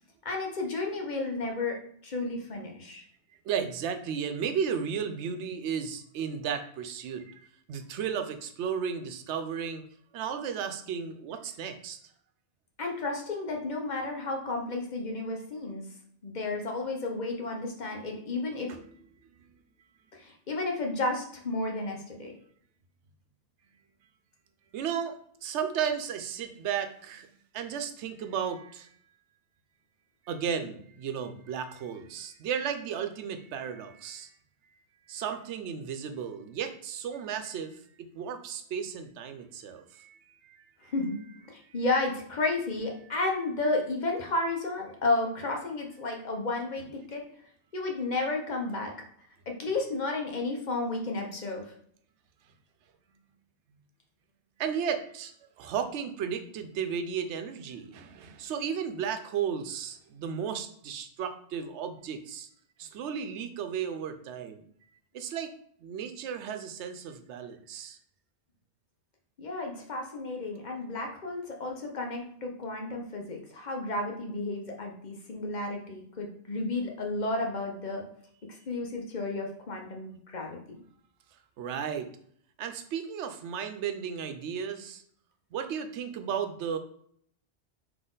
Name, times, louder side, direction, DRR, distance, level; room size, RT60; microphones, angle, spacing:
voice 1, 0.2-1.8 2.0-3.0 12.8-15.9 16.2-18.7 20.1-22.3 40.8-41.2 41.5-47.2 47.7-48.9 49.5-51.7 69.4-78.0 78.7-80.8, left 2 dB, 45° left, 1 dB, 0.9 m, -32 dB
voice 2, 3.5-9.8 10.1-12.0 18.7-18.8 24.7-27.3 27.5-28.9 30.3-34.3 35.1-37.8 38.1-40.6 54.6-62.5 62.8-64.6 65.1-65.5 65.8-68.0 81.6-82.1 82.6-85.0 85.5-86.8, right 7 dB, 85° right, 7 dB, 0.9 m, -34 dB
4.1 x 2.9 x 3.8 m, 0.64 s
omnidirectional pair, 1.1 m